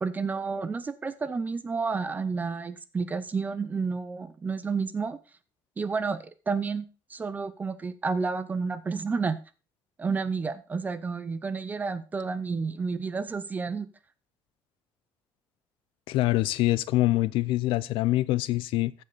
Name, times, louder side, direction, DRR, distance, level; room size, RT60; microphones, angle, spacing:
voice 1, 0.0-5.2 5.8-6.8 7.1-9.4 10.0-13.9, right 4 dB, 20° right, 0.6 m, -30 dB
voice 2, 16.1-18.9, left 17 dB, 85° left, 0.5 m, -25 dB
15.0 x 5.4 x 4.1 m
cardioid pair, 165°, 9 cm